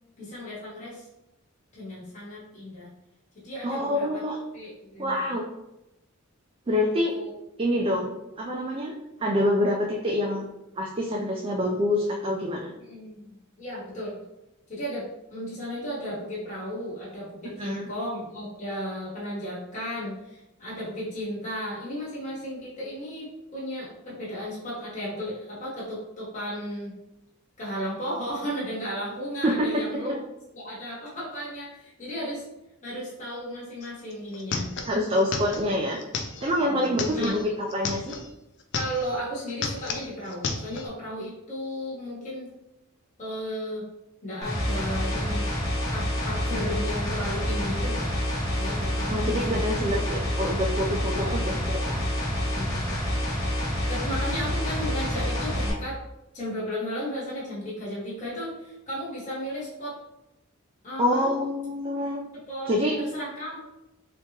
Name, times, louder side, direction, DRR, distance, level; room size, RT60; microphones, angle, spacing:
voice 1, 0.2-1.1 1.7-2.9 3.4-4.2 4.5-5.3 7.1-7.3 12.8-14.2 14.7-27.0 27.6-30.2 30.5-32.4 32.8-34.7 36.6-37.3 38.7-42.5 43.2-43.9 44.2-45.5 45.9-48.3 48.6-49.6 51.2-51.4 52.4-52.8 53.9-56.0 56.3-59.9 60.8-61.3 62.3-63.7, equal, 35° left, -7 dB, 1.2 m, -34 dB
voice 2, 3.6-4.4 5.0-5.4 6.7-7.1 7.6-8.9 9.2-10.5 10.8-12.7 17.6-17.9 29.4-30.1 34.9-36.0 36.4-38.1 49.0-51.4 51.7-52.0 61.0-62.2 62.7-63.0, left 1 dB, 25° right, -1 dB, 0.3 m, -26 dB
sound 1, 33.8-33.9 34.1-38.3 38.6-39.2 39.5-40.9, left 4 dB, 55° left, 0.4 m, -33 dB
sound 2, 44.4-55.7, equal, 15° left, 1.0 m, -28 dB
3.5 x 2.9 x 2.8 m, 0.90 s
head